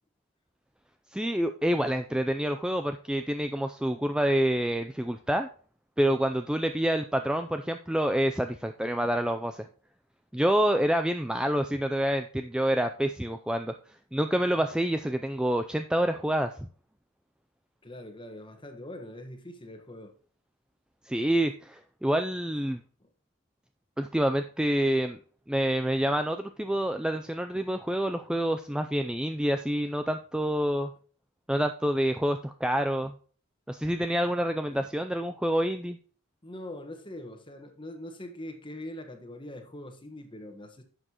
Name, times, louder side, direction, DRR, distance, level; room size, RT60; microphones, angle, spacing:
voice 1, 1.1-5.5 6.0-9.6 10.3-13.7 14.1-16.5 21.1-22.8 24.0-25.2 25.5-30.9 31.5-33.1 33.7-36.0, right 1 dB, 5° right, 0.3 m, -27 dB
voice 2, 17.8-20.1 34.7-34.9 36.4-40.8, left 1 dB, 20° left, 1.3 m, -43 dB
11.0 x 7.7 x 2.9 m
head